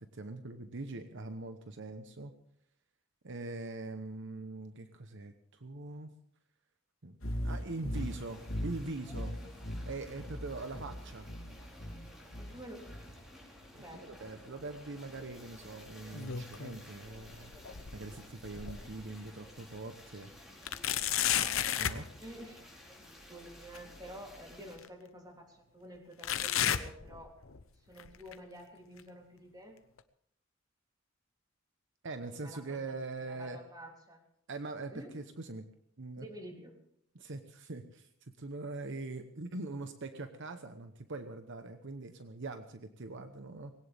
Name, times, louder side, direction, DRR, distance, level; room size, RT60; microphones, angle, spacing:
voice 1, 0.0-2.3 3.2-6.1 7.0-7.2 7.4-9.4 9.9-11.3 13.9-17.5 17.9-20.3 21.8-22.1 32.0-33.6 34.5-35.7 36.0-36.3 37.1-43.7, right 3 dB, 65° right, 8 dB, 1.0 m, -42 dB
sound 1, 7.2-13.2, equal, 90° left, 2.8 m, -40 dB
sound 2, 7.9-24.8, left 1 dB, ahead, 4.5 m, -54 dB
voice 2, 12.4-12.8 13.7-14.4 22.2-22.6 23.3-27.3 27.9-29.8 32.3-34.3 34.9-35.1 36.1-36.7, equal, 20° right, 1 dB, 3.2 m, -50 dB
sound 3, 15.9-16.8 17.2-19.1 19.6-19.7 20.6-22.0 23.7-23.8 24.8-24.9 26.2-27.6 28.0-28.3 29.0-29.1 30.0-30.1, left 10 dB, 70° left, 0.9 m, -33 dB
20.0 x 17.5 x 3.5 m, 0.70 s
head